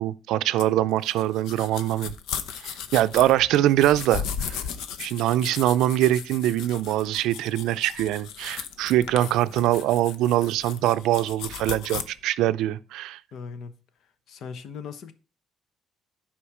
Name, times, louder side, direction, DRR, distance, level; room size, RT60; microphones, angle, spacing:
voice 1, 0.0-2.1 2.6-4.6 5.0-13.2, right 13 dB, 85° right, 0.4 m, -23 dB
sound 1, 0.6-12.0, left 7 dB, 80° left, 0.8 m, -36 dB
voice 2, 13.3-13.7 14.3-15.1, left 6 dB, 55° left, 0.9 m, -38 dB
10.0 x 5.1 x 4.9 m
cardioid pair, 160°, 0 cm